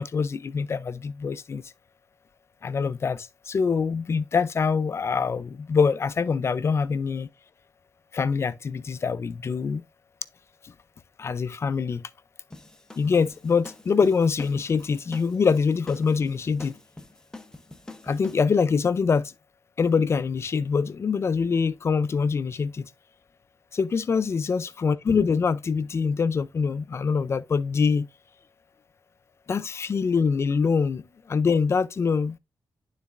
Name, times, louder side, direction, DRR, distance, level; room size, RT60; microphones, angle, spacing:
voice 1, 0.0-1.6 2.6-7.3 8.1-9.8 11.2-12.0 13.0-16.7 18.0-19.3 19.8-22.9 23.7-28.1 29.5-31.0 31.3-32.4, left 5 dB, 40° left, 0.4 m, -24 dB
sound 1, 12.5-18.4, left 2 dB, 10° left, 0.7 m, -45 dB
11.5 x 4.0 x 2.4 m
wide cardioid pair, 140°, 7 cm